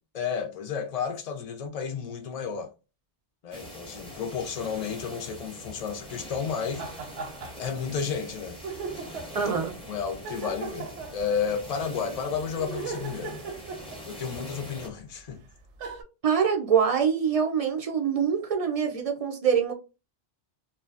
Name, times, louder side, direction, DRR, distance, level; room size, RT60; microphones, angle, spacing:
voice 1, 0.1-2.7 3.4-6.8 7.6-8.6 9.9-13.4 14.0-15.4, left 6 dB, 60° left, 0.4 m, -32 dB
sound 1, 3.5-14.9, equal, 5° left, 0.6 m, -43 dB
sound 2, 6.8-7.9 8.2-8.3 8.6-9.4 10.2-11.7 12.5-14.4 15.3-15.4 15.8-16.0, right 4 dB, 80° right, 0.9 m, -38 dB
voice 2, 9.3-9.7 16.2-19.7, right 7 dB, 60° right, 0.3 m, -24 dB
2.7 x 2.2 x 2.4 m
omnidirectional pair, 1.2 m